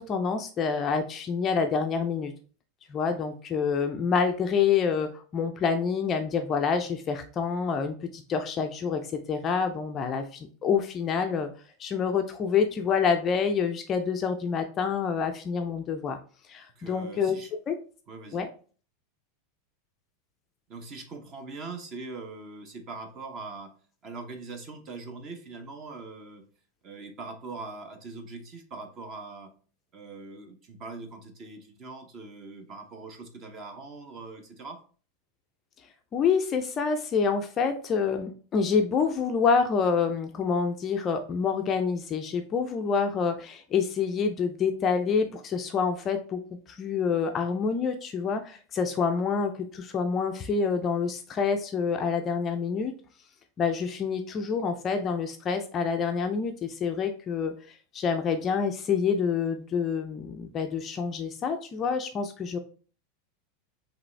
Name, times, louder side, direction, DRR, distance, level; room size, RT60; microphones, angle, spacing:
voice 1, 0.0-2.3 2.9-11.5 11.8-16.2 16.5-17.3 17.7-17.8 18.3-18.5 36.1-46.4 46.7-52.9 53.6-62.6, left 6 dB, 20° left, 6 dB, 0.4 m, -27 dB
voice 2, 16.8-17.5 18.1-18.4 20.7-23.7 24.0-26.4 26.8-29.5 29.9-34.8, right 3 dB, 25° right, 7 dB, 0.7 m, -42 dB
5.1 x 3.1 x 3.2 m, 0.40 s
supercardioid pair, 170°, 0 cm